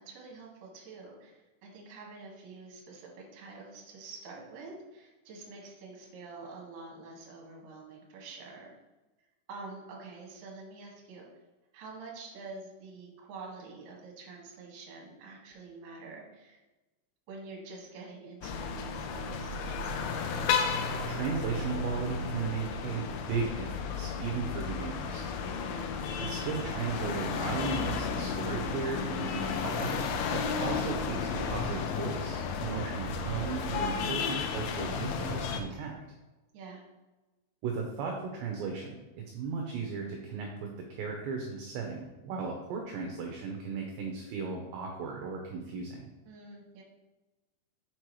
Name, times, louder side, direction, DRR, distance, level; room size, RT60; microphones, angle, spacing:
voice 1, 0.0-8.7 9.5-11.3 11.7-16.6 17.3-20.2 25.4-26.0 36.5-36.8 46.2-46.8, right 3 dB, 60° right, -2 dB, 2.6 m, -47 dB
sound 1, 18.4-35.6, left 5 dB, 85° left, 3.0 m, -33 dB
voice 2, 21.1-25.3 26.2-36.0 37.6-46.1, right 5 dB, 75° right, 1 dB, 2.7 m, -36 dB
6.7 x 6.1 x 3.1 m, 1.1 s
omnidirectional pair, 5.6 m